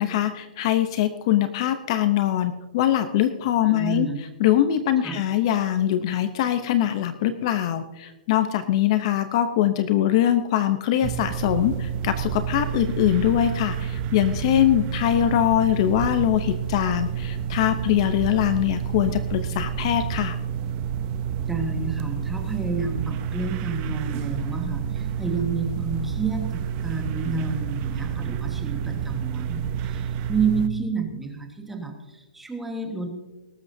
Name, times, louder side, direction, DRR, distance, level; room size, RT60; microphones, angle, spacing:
voice 1, 0.0-4.1 4.4-20.4, left 11 dB, 35° left, 10 dB, 0.7 m, -22 dB
voice 2, 3.6-4.2 5.0-5.2 21.4-33.1, right 4 dB, 5° right, 3 dB, 1.4 m, -30 dB
sound 1, 11.0-30.7, right 8 dB, 25° right, 0.6 m, -29 dB
19.5 x 12.0 x 2.7 m, 1.1 s
hypercardioid pair, 165°, 5 cm